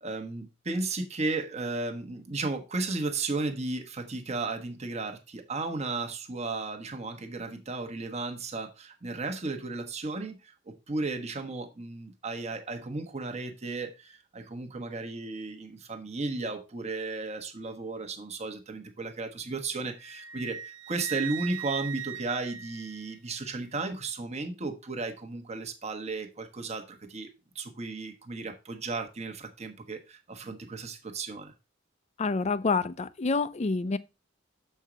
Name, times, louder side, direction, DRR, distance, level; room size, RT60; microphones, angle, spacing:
voice 1, 0.0-27.3 27.5-31.5, right 3 dB, 35° right, 1.1 m, -34 dB
Wind instrument woodwind instrument, 20.0-23.5, right 9 dB, 85° right, 0.9 m, -39 dB
voice 2, 32.2-34.0, left 4 dB, 35° left, 0.5 m, -27 dB
7.1 x 4.6 x 4.9 m
head